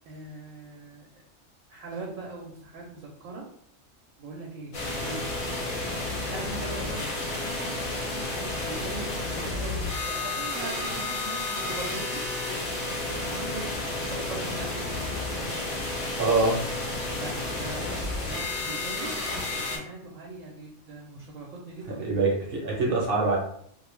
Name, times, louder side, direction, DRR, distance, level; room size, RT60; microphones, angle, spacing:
voice 1, 0.1-1.1 1.7-3.5 4.2-5.3 6.0-12.5 12.7-14.7 17.2-19.2 19.5-22.3, right 3 dB, 85° right, -2 dB, 0.9 m, -41 dB
sound 1, 4.7-19.8, left 2 dB, 50° left, 0.8 m, -31 dB
voice 2, 16.2-16.6 21.9-23.4, right 3 dB, 55° right, -2 dB, 0.8 m, -24 dB
2.3 x 2.2 x 3.1 m, 0.67 s
omnidirectional pair, 1.3 m